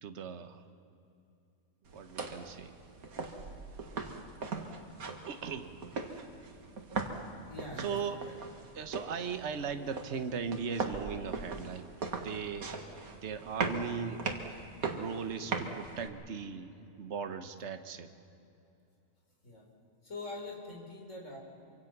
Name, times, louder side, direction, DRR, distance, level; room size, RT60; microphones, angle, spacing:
voice 1, 0.0-0.6 1.9-2.7 5.3-5.8 7.8-8.2 8.7-11.9 12.2-12.8 13.1-14.3 14.9-16.7 17.0-18.1, right 6 dB, 55° right, 8 dB, 1.3 m, -38 dB
sound 1, 1.9-16.1, right 4 dB, 90° right, 2.1 m, -40 dB
voice 2, 7.5-8.4 16.3-16.5 19.4-19.7 20.0-21.4, left 2 dB, 60° left, 0 dB, 4.4 m, -44 dB
25.5 x 24.5 x 5.9 m, 2.7 s
omnidirectional pair, 1.5 m